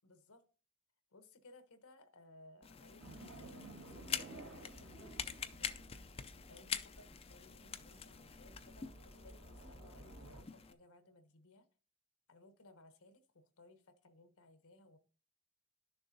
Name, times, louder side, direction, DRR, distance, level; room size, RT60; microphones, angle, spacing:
voice 1, 0.0-0.5 1.1-5.8 6.5-11.7 12.3-15.0, left 2 dB, 70° left, 1.0 m, -62 dB
sound 1, 2.6-10.7, left 7 dB, 25° left, 0.4 m, -46 dB
sound 2, 3.0-10.4, right 1 dB, 55° right, 1.8 m, -54 dB
11.5 x 6.8 x 2.7 m
head